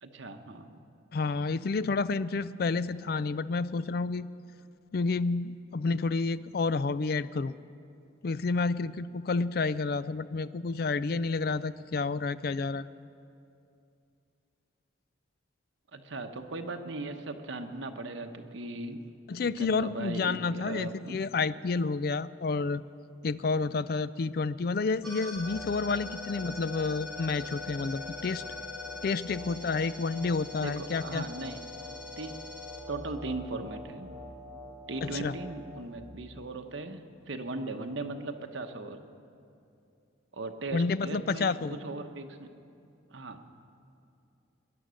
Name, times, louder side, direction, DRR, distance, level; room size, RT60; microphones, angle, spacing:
voice 1, 0.0-0.8 15.9-19.0 19.4-21.2 24.1-24.2 30.6-31.6 32.2-32.4 32.9-34.1 34.9-37.0 37.3-39.0 40.3-42.5 43.1-43.4, right 2 dB, 80° right, 5 dB, 1.1 m, -38 dB
voice 2, 1.1-4.3 4.9-7.5 8.2-12.9 19.3-22.8 23.2-28.4 29.0-31.3 35.0-35.4 40.7-41.8, left 4 dB, 50° left, 16 dB, 0.4 m, -30 dB
sound 1, 25.0-35.8, left 2 dB, ahead, 2.7 m, -42 dB
21.0 x 11.0 x 6.4 m, 2.5 s
head